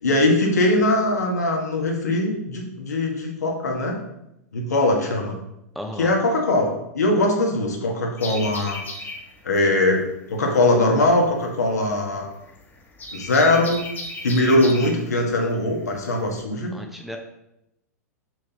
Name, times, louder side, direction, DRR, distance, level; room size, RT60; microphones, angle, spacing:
voice 1, 0.0-4.0 4.5-5.4 6.0-8.8 9.4-10.0 10.3-12.3 13.1-13.8 14.2-16.8, left 2 dB, 80° left, 0 dB, 1.6 m, -21 dB
voice 2, 5.7-6.1 16.7-17.2, left 1 dB, ahead, 3 dB, 0.9 m, -34 dB
sound 1, 8.2-16.4, left 2 dB, 20° left, 1.3 m, -36 dB
6.5 x 6.2 x 3.0 m, 0.84 s
hypercardioid pair, 100°, 9 cm